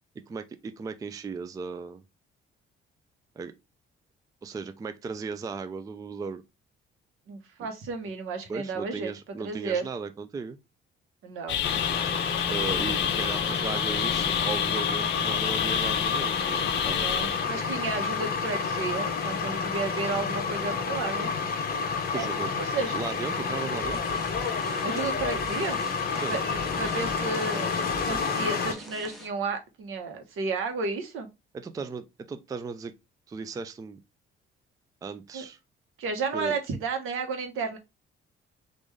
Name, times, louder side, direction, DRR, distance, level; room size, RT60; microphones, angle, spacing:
voice 1, 0.3-2.0 3.4-3.5 4.4-6.4 7.6-7.7 8.5-10.6 12.5-17.2 22.1-22.5 22.9-24.2 26.1-26.4 31.5-32.9 33.3-34.0 35.0-35.6 36.3-36.6, right 5 dB, 15° right, 0.3 m, -36 dB
voice 2, 7.3-9.1 9.4-9.9 11.2-11.7 16.9-21.3 22.1-22.3 22.6-23.0 24.8-25.8 26.3-27.7 28.0-31.3 35.3-35.4 36.0-37.8, right 4 dB, 80° right, 1.1 m, -32 dB
sound 1, 11.5-17.4, left 11 dB, 60° left, 0.4 m, -29 dB
sound 2, 11.6-28.7, left 5 dB, 45° left, 0.9 m, -29 dB
sound 3, 23.8-29.5, right 1 dB, ahead, 0.7 m, -44 dB
3.6 x 2.6 x 3.1 m
cardioid pair, 135°, 21 cm